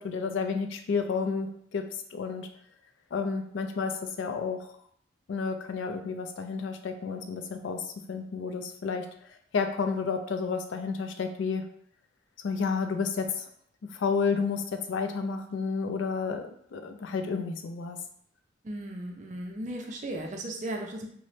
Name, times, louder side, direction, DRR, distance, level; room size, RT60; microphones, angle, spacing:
voice 1, 0.0-2.5 3.1-4.7 5.3-9.1 9.5-11.7 12.4-13.4 13.9-18.0, left 5 dB, 75° left, 7 dB, 0.4 m, -31 dB
voice 2, 18.6-21.1, right 1 dB, 40° right, 2 dB, 0.4 m, -36 dB
2.9 x 2.1 x 3.1 m, 0.65 s
head